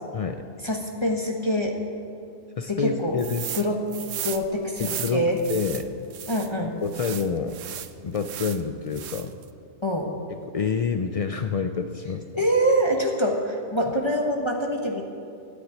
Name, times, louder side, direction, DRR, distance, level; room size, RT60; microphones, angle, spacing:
voice 1, 0.6-1.8 2.7-3.2 3.5-3.8 4.2-5.4 6.3-6.7 9.8-10.1 12.3-15.0, equal, 20° left, 0 dB, 1.3 m, -25 dB
voice 2, 2.6-3.5 4.8-6.1 6.8-7.6 8.0-9.4 10.5-12.2, left 5 dB, 60° left, 7 dB, 0.3 m, -28 dB
sound 1, 3.2-3.7 3.9-6.5 6.9-8.6 8.9-9.4, right 10 dB, 75° right, 1.0 m, -35 dB
13.5 x 9.6 x 9.3 m, 2.5 s
omnidirectional pair, 1.3 m